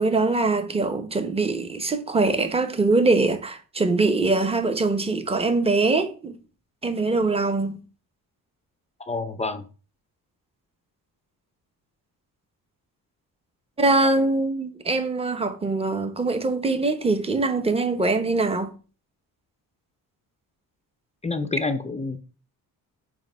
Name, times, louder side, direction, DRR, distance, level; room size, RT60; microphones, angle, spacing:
voice 1, 0.0-6.4 6.8-7.8 13.8-18.7, right 3 dB, 15° right, 0.9 m, -23 dB
voice 2, 9.1-9.6 21.2-22.2, left 3 dB, 20° left, 0.5 m, -28 dB
8.8 x 3.0 x 5.4 m
cardioid pair, 125°, 37 cm